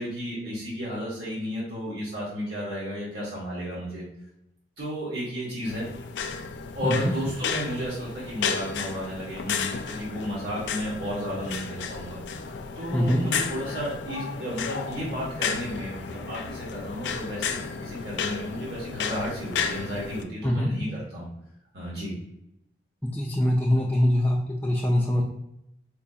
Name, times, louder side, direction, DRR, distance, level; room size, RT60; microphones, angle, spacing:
voice 1, 0.0-4.0 4.8-5.9 6.7-21.3 21.7-22.1, equal, 70° right, -7 dB, 1.2 m, -33 dB
sound 1, 5.7-20.2, left 6 dB, 85° left, 0.4 m, -33 dB
voice 2, 12.9-13.3 20.4-20.8 23.1-25.2, left 1 dB, 10° left, -4 dB, 0.3 m, -23 dB
4.6 x 2.3 x 2.7 m, 0.80 s
head